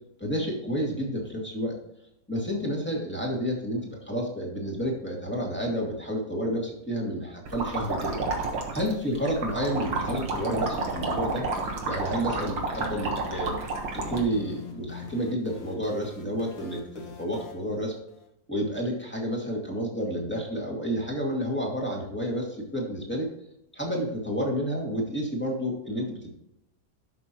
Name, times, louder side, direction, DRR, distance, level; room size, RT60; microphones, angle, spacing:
voice 1, 0.2-1.8 2.3-8.2 8.7-11.5 11.8-13.6 13.9-17.9 18.5-23.3 23.7-26.3, equal, 5° left, -1 dB, 2.1 m, -30 dB
sound 1, 7.5-14.2, right 3 dB, 85° right, 2.2 m, -30 dB
sound 2, 13.7-18.3, left 6 dB, 85° left, 2.0 m, -45 dB
12.0 x 6.0 x 3.0 m, 0.80 s
omnidirectional pair, 2.0 m